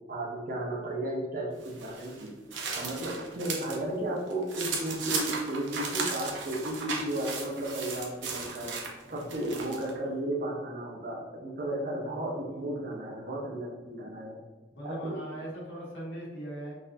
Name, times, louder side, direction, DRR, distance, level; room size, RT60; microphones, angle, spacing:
voice 1, 0.1-14.4 14.8-15.2, right 1 dB, 50° right, -2 dB, 0.7 m, -34 dB
sound 1, 1.6-3.8 4.2-9.9, right 4 dB, 85° right, 0.6 m, -36 dB
voice 2, 12.4-13.0 14.7-16.7, right 1 dB, 70° left, -7 dB, 1.3 m, -41 dB
4.0 x 2.6 x 2.6 m, 1.2 s
head